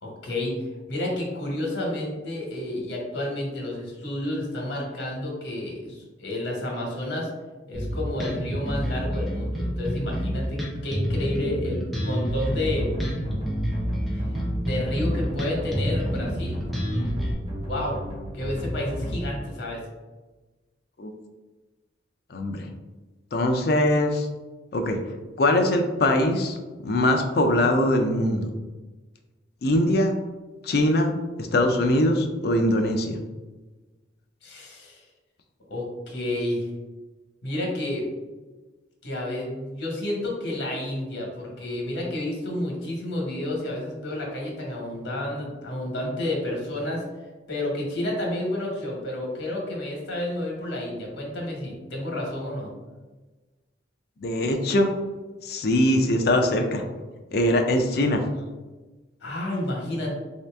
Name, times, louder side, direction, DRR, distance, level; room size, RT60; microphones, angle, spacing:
voice 1, 0.0-7.3 7.7-12.9 14.5-16.6 17.6-18.0 18.3-19.8 34.4-35.0 35.7-36.7 37.4-38.1 39.0-47.0 47.5-52.7 59.2-60.2, left 1 dB, 85° left, -1 dB, 1.1 m, -30 dB
Bass guitar, 7.7-17.3, equal, ahead, 0.5 m, -28 dB
sound 1, 12.4-19.3, equal, 30° right, 0.8 m, -33 dB
voice 2, 22.3-22.7 23.3-24.3 24.7-25.0 25.4-26.6 26.8-28.5 29.6-30.2 30.6-31.1 31.4-33.2 54.2-54.9 55.4-56.8 57.3-58.2, left 1 dB, 55° left, 4 dB, 0.4 m, -22 dB
3.2 x 2.7 x 3.4 m, 1.2 s
head